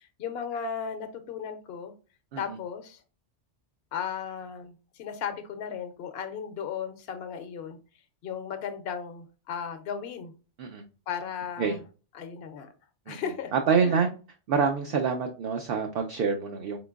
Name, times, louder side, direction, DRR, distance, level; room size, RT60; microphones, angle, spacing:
voice 1, 0.0-1.9 2.4-3.0 3.9-7.8 8.2-10.3 11.1-11.8 12.1-12.7 13.1-13.5 13.8-14.0, left 7 dB, 65° left, 8 dB, 0.8 m, -35 dB
voice 2, 13.5-14.1 14.5-16.8, right 5 dB, 60° right, 3 dB, 0.7 m, -26 dB
4.2 x 3.8 x 2.3 m, 0.35 s
omnidirectional pair, 1.2 m